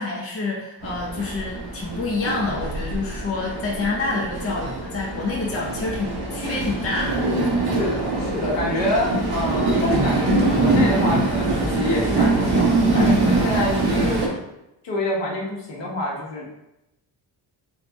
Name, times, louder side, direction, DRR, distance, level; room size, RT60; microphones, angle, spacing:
voice 1, 0.0-7.2, left 3 dB, 30° left, -4 dB, 0.8 m, -27 dB
Train, 0.8-14.3, right 2 dB, 60° right, 1.0 m, -23 dB
voice 2, 7.8-14.3 14.8-16.5, left 1 dB, 75° left, -3 dB, 1.3 m, -26 dB
4.1 x 2.5 x 3.4 m, 0.89 s
cardioid pair, 150°, 44 cm